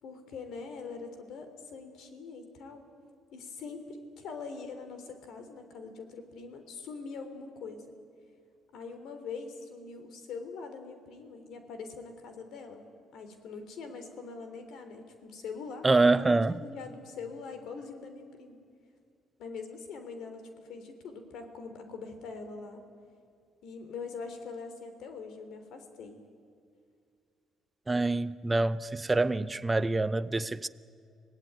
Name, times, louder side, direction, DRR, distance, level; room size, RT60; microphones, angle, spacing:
voice 1, 0.0-2.8 3.3-7.9 8.7-18.6 19.4-22.8 23.6-26.2, left 4 dB, 70° left, 3.4 m, -43 dB
voice 2, 15.8-16.6 27.9-30.7, right 2 dB, 15° right, 0.7 m, -26 dB
26.0 x 18.0 x 9.4 m
cardioid pair, 105°, 0 cm